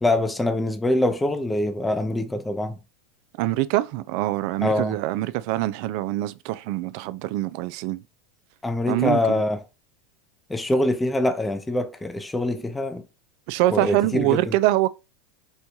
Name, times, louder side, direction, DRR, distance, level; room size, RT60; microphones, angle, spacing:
voice 1, 0.0-2.8 4.6-5.0 8.6-9.6 10.5-13.0 13.7-14.5, left 1 dB, 10° left, 0.5 m, -24 dB
voice 2, 3.4-8.0 8.9-9.4 13.5-14.9, right 16 dB, 60° right, 0.3 m, -24 dB
4.4 x 2.3 x 2.7 m
hypercardioid pair, 100°, 0 cm